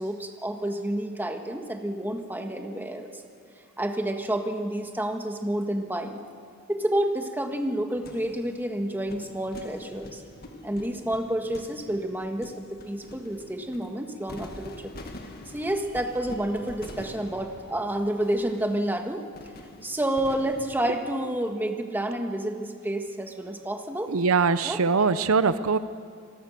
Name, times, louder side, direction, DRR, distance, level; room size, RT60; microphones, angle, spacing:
voice 1, 0.0-3.2 3.8-6.2 6.7-10.2 10.6-14.9 15.5-19.2 19.8-24.1 24.6-24.8, right 1 dB, 10° right, 4 dB, 1.5 m, -29 dB
sound 1, 7.9-20.9, left 1 dB, 45° left, 1.9 m, -46 dB
voice 2, 24.1-25.8, right 4 dB, 80° right, 13 dB, 0.7 m, -22 dB
26.5 x 20.0 x 6.7 m, 2.1 s
head